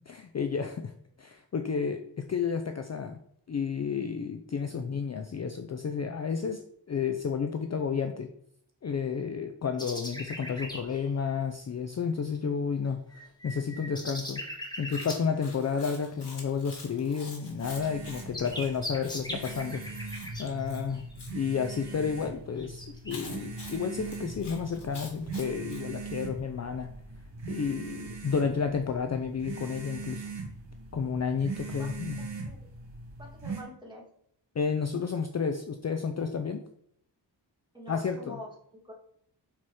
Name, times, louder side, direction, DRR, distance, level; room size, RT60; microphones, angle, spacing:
voice 1, 0.1-0.9 1.2-3.2 3.5-8.3 8.8-14.4 14.8-19.8 20.4-21.0 21.3-26.9 27.5-30.3 30.9-32.3 34.6-36.6 37.9-38.4, left 6 dB, 35° left, 6 dB, 0.5 m, -31 dB
sound 1, 9.8-11.0 13.1-15.2 17.5-17.6 17.8-21.2 21.7-21.9 22.6-23.1, equal, 10° left, 1.6 m, -40 dB
Chewing mastication, 14.9-21.3 23.1-25.8, left 3 dB, 65° left, 2.0 m, -47 dB
sound 2, 17.6-33.6, right 4 dB, 90° right, 2.0 m, -41 dB
voice 2, 32.2-32.6 33.2-34.0 37.7-38.9, left 1 dB, 10° right, -2 dB, 2.0 m, -45 dB
5.8 x 4.4 x 4.8 m, 0.68 s
wide cardioid pair, 90°, 45 cm